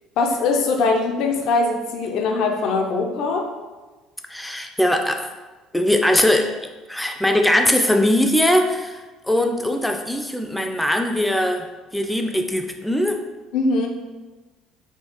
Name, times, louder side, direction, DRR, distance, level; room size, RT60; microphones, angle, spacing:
voice 1, 0.2-3.5 13.5-13.9, left 3 dB, 60° left, 2 dB, 0.5 m, -21 dB
voice 2, 4.3-5.3 5.7-6.5 6.9-11.7 11.9-13.2, left 1 dB, 5° left, 4 dB, 0.4 m, -20 dB
3.6 x 2.4 x 2.8 m, 1.2 s
hypercardioid pair, 60°, 0 cm